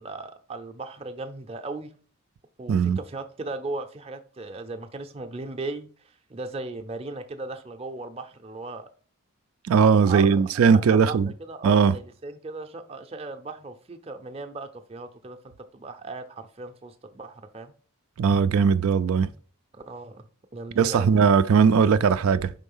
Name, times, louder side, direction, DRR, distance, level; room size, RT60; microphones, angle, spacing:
voice 1, 0.0-1.9 2.6-5.9 6.3-8.9 10.0-17.7 19.7-20.2 20.5-21.1, right 3 dB, 30° right, 0.5 m, -37 dB
voice 2, 2.7-3.0 9.7-11.3 11.6-12.0 18.2-19.3 20.8-22.5, right 6 dB, 85° right, 0.3 m, -19 dB
5.4 x 3.8 x 5.4 m
head